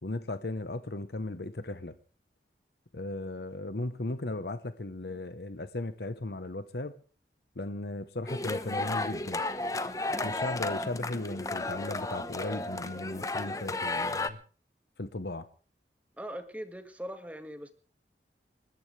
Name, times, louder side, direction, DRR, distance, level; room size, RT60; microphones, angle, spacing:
voice 1, 0.0-1.9 2.9-6.9 7.6-9.4 10.2-14.4 15.0-15.5, left 2 dB, 65° left, 1.0 m, -36 dB
sound 1, 8.3-14.3, left 2 dB, 20° left, 1.0 m, -33 dB
voice 2, 16.2-17.7, equal, 10° right, 1.9 m, -40 dB
29.5 x 14.0 x 3.3 m
head